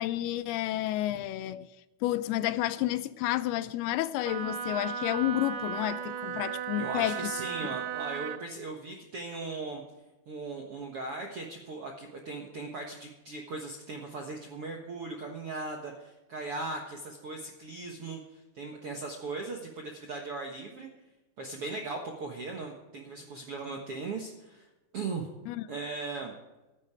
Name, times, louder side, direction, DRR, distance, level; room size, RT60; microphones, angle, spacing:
voice 1, 0.0-1.7 2.0-7.2 25.5-25.6, left 14 dB, 80° left, 13 dB, 2.4 m, -30 dB
Wind instrument woodwind instrument, 4.2-8.4, right 9 dB, 90° right, 2.0 m, -35 dB
voice 2, 6.8-9.8 10.3-20.9 21.4-25.3 25.7-26.3, right 3 dB, 70° right, 1 dB, 1.3 m, -38 dB
14.5 x 12.0 x 4.9 m, 1.0 s
omnidirectional pair, 4.8 m